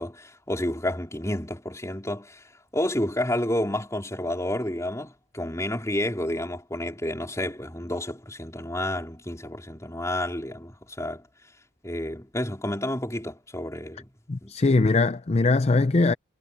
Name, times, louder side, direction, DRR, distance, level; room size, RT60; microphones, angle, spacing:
voice 1, 0.0-11.3 11.8-14.1 14.4-14.5, left 1 dB, 15° left, 4.1 m, -30 dB
voice 2, 14.3-16.1, left 3 dB, 30° left, 0.5 m, -21 dB
head